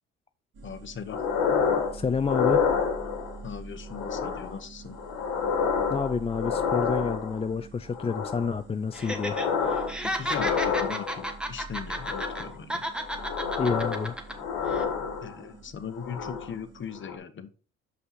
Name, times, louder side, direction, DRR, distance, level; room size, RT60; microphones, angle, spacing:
sound 1, 0.5-17.0, right 3 dB, 55° right, 2.5 m, -46 dB
voice 1, 0.6-1.2 3.4-5.0 10.0-12.8 15.2-17.5, left 7 dB, 40° left, 1.0 m, -39 dB
sound 2, 1.1-1.9 2.2-3.4 3.9-4.6 4.9-7.5 7.9-8.6 8.9-9.9 10.2-11.3 11.9-12.5 13.0-15.5 15.9-16.5 16.9-17.2, left 6 dB, 75° left, 1.4 m, -29 dB
voice 2, 1.9-2.6 5.9-9.5 13.6-14.2, left 5 dB, 20° left, 0.4 m, -29 dB
Laughter, 8.9-9.5 9.8-12.4 12.7-14.3 14.7-14.8, equal, 5° right, 1.3 m, -32 dB
6.4 x 5.5 x 4.1 m
supercardioid pair, 60°, 30 cm